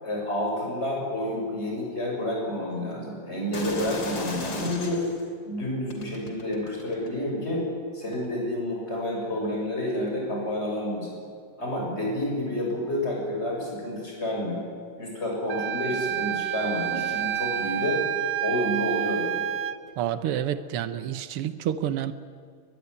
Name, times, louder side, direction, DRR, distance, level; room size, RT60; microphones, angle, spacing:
voice 1, 0.0-5.0 5.5-7.7 7.9-11.1 11.6-14.6 15.0-18.0 18.4-19.4, left 1 dB, 30° left, -1 dB, 7.4 m, -29 dB
sound 1, 3.5-5.2 5.9-7.3 8.1-8.3, left 2 dB, 55° left, 3.6 m, -35 dB
Wind instrument woodwind instrument, 15.5-19.8, right 10 dB, 60° right, 0.9 m, -29 dB
voice 2, 20.0-22.1, right 10 dB, 85° right, 12 dB, 1.9 m, -29 dB
22.5 x 21.5 x 9.8 m, 2.1 s
omnidirectional pair, 2.4 m